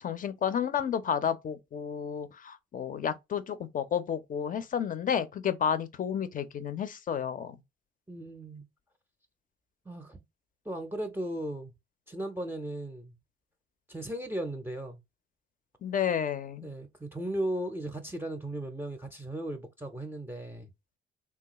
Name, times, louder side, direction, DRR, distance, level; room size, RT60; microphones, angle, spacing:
voice 1, 0.0-7.6 15.8-16.7, left 8 dB, 45° left, 0.5 m, -31 dB
voice 2, 8.1-8.7 9.9-10.2 10.7-11.7 12.1-13.1 13.9-15.0 16.6-20.7, right 1 dB, 10° right, 0.5 m, -36 dB
3.1 x 2.3 x 2.9 m
cardioid pair, 90°, 20 cm